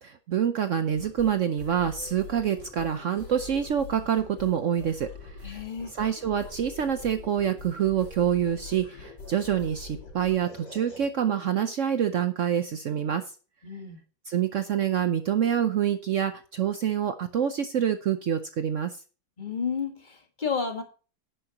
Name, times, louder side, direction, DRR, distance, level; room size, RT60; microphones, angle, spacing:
voice 1, 0.0-5.6 5.9-13.2 14.3-19.0, right 9 dB, 80° right, 9 dB, 0.6 m, -26 dB
sound 1, 0.9-11.1, left 3 dB, 55° left, 3.5 m, -44 dB
voice 2, 5.4-5.9 13.6-14.0 19.4-20.8, left 6 dB, 25° left, 4 dB, 1.6 m, -31 dB
10.5 x 10.0 x 2.9 m, 0.36 s
omnidirectional pair, 2.2 m